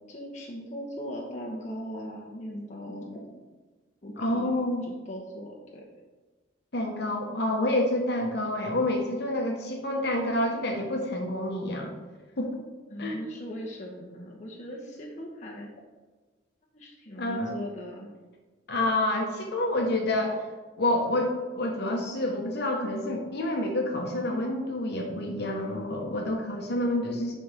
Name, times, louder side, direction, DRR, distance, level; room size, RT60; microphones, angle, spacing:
voice 1, 0.1-3.4 4.0-5.8 12.9-15.7 16.7-18.1, equal, 35° left, -3 dB, 1.0 m, -39 dB
voice 2, 4.2-4.8 6.7-11.9 12.4-12.6 13.0-13.3 17.2-17.5 18.7-20.4 20.8-27.4, left 1 dB, 55° left, 1 dB, 1.1 m, -28 dB
11.0 x 4.3 x 3.4 m, 1.3 s
head